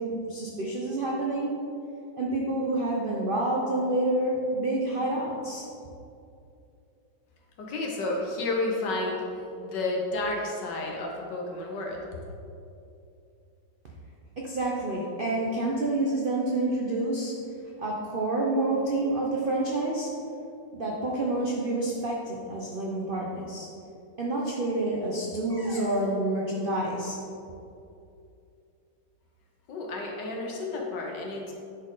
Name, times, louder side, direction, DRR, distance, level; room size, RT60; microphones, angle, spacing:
voice 1, 0.0-1.5 2.2-5.6 14.4-17.3 17.8-20.1 20.7-23.7 24.2-27.2, right 2 dB, 85° right, -3 dB, 0.4 m, -28 dB
voice 2, 7.6-9.2 9.6-12.0 29.7-31.5, left 2 dB, 65° left, -1 dB, 1.6 m, -31 dB
9.3 x 4.3 x 3.9 m, 2.6 s
omnidirectional pair, 2.1 m